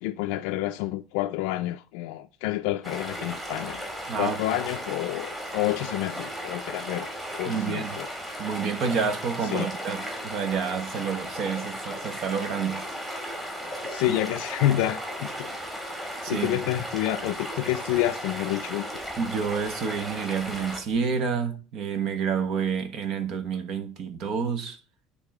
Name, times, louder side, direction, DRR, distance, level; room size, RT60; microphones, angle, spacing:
voice 1, 0.0-3.8 4.2-8.1 9.4-9.7 13.6-15.6 16.3-18.9, left 15 dB, 85° left, 0.4 m, -29 dB
sound 1, 2.8-21.0, equal, 10° right, 2.2 m, -36 dB
voice 2, 7.5-8.0 8.4-12.8 14.1-14.2 16.2-16.6 19.2-24.8, right 6 dB, 50° right, 1.2 m, -29 dB
10.0 x 3.7 x 4.8 m
cardioid pair, 145°, 0 cm